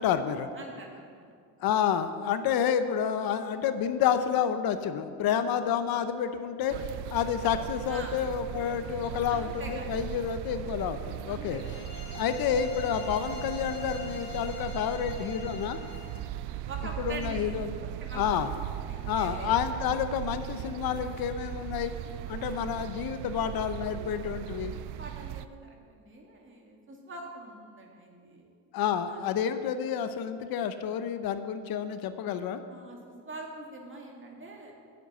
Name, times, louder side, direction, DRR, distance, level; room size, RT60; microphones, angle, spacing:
voice 1, 0.0-0.5 1.6-6.8 7.1-11.6 12.1-15.8 17.0-17.7 18.1-18.5 19.0-21.9 22.3-24.7 28.7-32.6, left 8 dB, 65° left, 10 dB, 0.8 m, -29 dB
voice 2, 0.5-1.3 7.9-8.1 9.3-9.9 11.3-11.8 16.7-17.4 17.8-18.4 18.9-19.6 22.4-22.7 24.7-28.4 29.1-29.2 32.7-34.7, right 2 dB, 30° right, 0 dB, 2.2 m, -44 dB
sound 1, 6.7-25.5, right 12 dB, 80° right, 0.5 m, -38 dB
sound 2, 11.5-16.3, left 4 dB, 45° left, 2.4 m, -43 dB
9.2 x 7.6 x 8.0 m, 2.2 s
cardioid pair, 115°, 40 cm